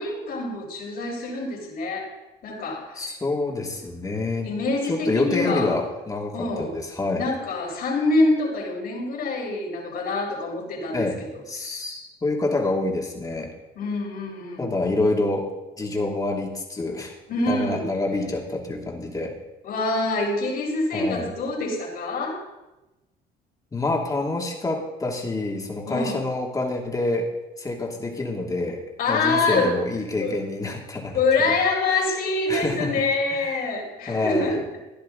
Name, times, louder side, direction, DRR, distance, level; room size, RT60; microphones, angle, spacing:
voice 1, 0.0-2.1 2.4-3.1 4.4-5.8 6.3-6.7 7.2-11.1 11.3-11.4 13.8-14.6 17.3-17.9 19.6-22.4 25.8-26.2 29.0-29.8 30.2-30.3 31.1-34.6, left 3 dB, 60° left, -1 dB, 4.4 m, -25 dB
voice 2, 3.0-4.5 4.9-7.3 10.9-11.2 11.5-13.5 14.6-15.5 15.8-17.1 17.5-19.3 20.9-21.3 23.7-27.3 27.6-28.8 29.1-31.2 31.9-32.1 32.5-32.9 33.4-33.5 34.1-34.6, left 2 dB, 20° left, -1 dB, 2.6 m, -27 dB
15.5 x 11.0 x 3.9 m, 1.0 s
cardioid pair, 110°, 17 cm